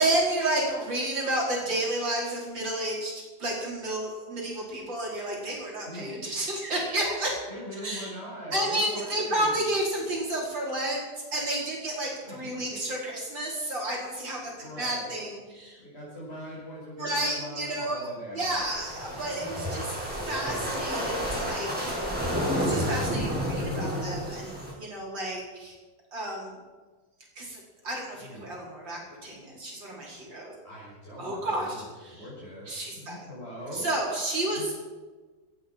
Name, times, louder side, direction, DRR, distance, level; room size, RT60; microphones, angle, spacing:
voice 1, 0.0-3.1 3.4-7.4 7.8-8.1 8.5-11.0 11.3-14.4 14.8-15.8 17.0-22.0 22.6-25.7 26.1-26.6 27.4-30.5 31.2-32.2 32.7-33.2 33.7-34.7, right 1 dB, 90° right, -3 dB, 5.8 m, -31 dB
voice 2, 5.8-6.3 7.5-9.7 12.2-12.8 14.6-15.2 15.8-18.6 28.2-28.5 30.3-33.9 34.5-34.6, equal, 35° left, -8 dB, 6.8 m, -42 dB
sound 1, 18.5-24.7, equal, 5° right, 7.2 m, -30 dB
18.0 x 14.0 x 5.6 m, 1.3 s
omnidirectional pair, 2.0 m